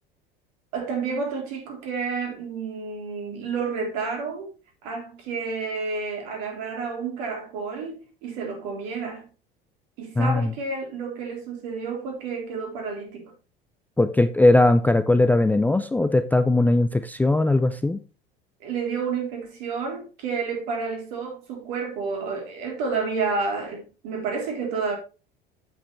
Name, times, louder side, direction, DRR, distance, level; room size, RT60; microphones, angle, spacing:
voice 1, 0.7-4.5 4.8-9.2 10.0-13.3 18.6-25.0, right 4 dB, 55° right, 3.5 m, -30 dB
voice 2, 10.2-10.5 14.0-18.0, left 2 dB, 5° left, 0.5 m, -19 dB
8.3 x 8.1 x 3.3 m
figure-of-eight pair, 70°, 29 cm